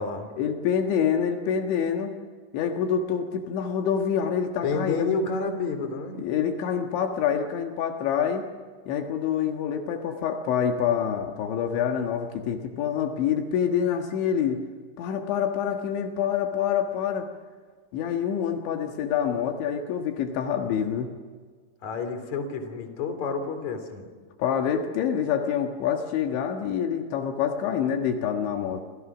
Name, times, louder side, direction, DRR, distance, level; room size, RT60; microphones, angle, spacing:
voice 1, 0.4-2.2 2.5-5.1 6.2-8.4 8.9-14.6 15.0-17.3 17.9-21.1 24.4-28.8, left 8 dB, 80° left, 4 dB, 3.9 m, -26 dB
voice 2, 4.6-6.2 21.8-24.0, left 4 dB, 40° left, 7 dB, 4.1 m, -29 dB
29.0 x 27.0 x 6.2 m, 1.5 s
omnidirectional pair, 5.3 m